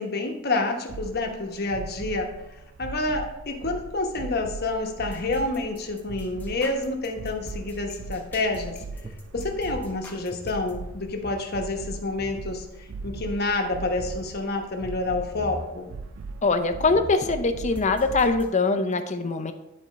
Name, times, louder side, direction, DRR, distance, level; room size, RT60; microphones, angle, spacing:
voice 1, 0.0-2.3 2.8-8.7 9.3-15.9, left 2 dB, 50° left, 3 dB, 1.1 m, -28 dB
sound 1, 0.9-18.3, right 4 dB, 85° right, 0.5 m, -40 dB
sound 2, 5.0-10.7 17.7-18.5, equal, 10° left, 1.2 m, -45 dB
sound 3, 9.0-11.5 11.7-11.8 12.1-12.4 13.0-13.5 13.8-14.4 15.3-15.7 16.5-16.6 16.8-17.5, right 2 dB, 25° right, 0.5 m, -41 dB
voice 2, 16.4-19.5, left 3 dB, 35° left, 8 dB, 0.6 m, -23 dB
10.5 x 4.3 x 4.1 m, 0.96 s
head